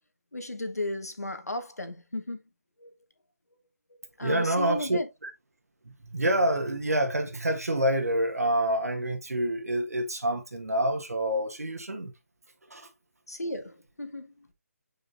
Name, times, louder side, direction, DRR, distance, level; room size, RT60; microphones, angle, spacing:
voice 1, 0.3-2.4 2.8-2.9 4.2-5.1 13.3-14.5, left 1 dB, 85° left, 1.6 m, -35 dB
voice 2, 4.2-5.3 5.9-12.1 12.7-12.9, right 1 dB, 75° right, 1.7 m, -27 dB
7.1 x 5.2 x 2.7 m
figure-of-eight pair, 150°, 8 cm